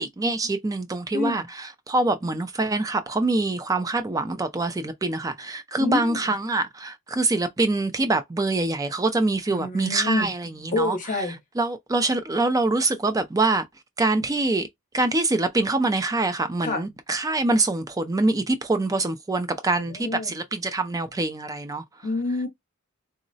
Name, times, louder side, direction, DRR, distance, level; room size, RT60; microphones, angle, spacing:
voice 1, 0.0-11.0 11.6-13.6 14.0-14.7 14.9-21.8, right 2 dB, 15° right, 0.3 m, -25 dB
voice 2, 1.1-1.5 5.8-6.2 9.5-10.3 10.7-11.4 16.6-16.9 19.9-20.3 22.0-22.5, left 2 dB, 35° left, 0.7 m, -27 dB
3.7 x 2.0 x 2.6 m
head